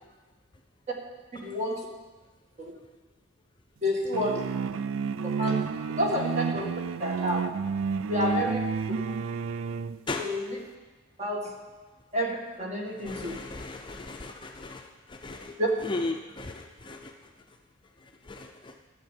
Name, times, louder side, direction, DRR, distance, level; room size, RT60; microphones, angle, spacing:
voice 1, 1.3-1.9 2.6-2.7 3.8-4.5 5.4-5.5 6.0-6.7 7.0-7.4 8.1-8.6 10.2-10.6 11.2-11.6 12.1-13.3 15.6-15.7, left 1 dB, 35° right, -1 dB, 2.0 m, -29 dB
sound 1, 4.1-10.0, right 5 dB, 75° right, 0.4 m, -30 dB
voice 2, 13.0-14.8 15.1-15.5 15.8-17.1 18.3-18.7, left 3 dB, 25° left, 3 dB, 0.6 m, -36 dB
12.0 x 8.0 x 7.5 m, 1.3 s
head